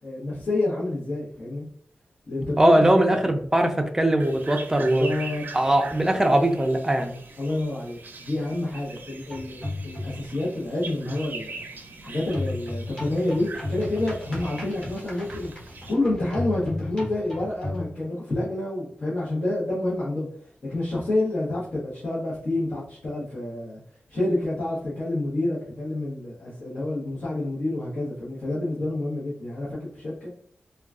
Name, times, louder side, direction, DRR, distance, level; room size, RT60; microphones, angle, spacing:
voice 1, 0.0-1.6 2.3-3.2 4.7-5.4 7.4-11.6 12.0-15.5 15.9-20.3 20.7-23.8 24.1-30.3, left 2 dB, 50° left, -8 dB, 1.0 m, -28 dB
voice 2, 2.6-5.1 5.5-7.1, right 1 dB, 15° right, 4 dB, 0.4 m, -20 dB
sound 1, 4.2-15.9, right 3 dB, 65° right, 0.5 m, -42 dB
sound 2, 9.3-10.4 12.3-17.9, left 2 dB, 20° left, 1.2 m, -34 dB
3.7 x 2.3 x 2.4 m, 0.66 s
wide cardioid pair, 105°, 4 cm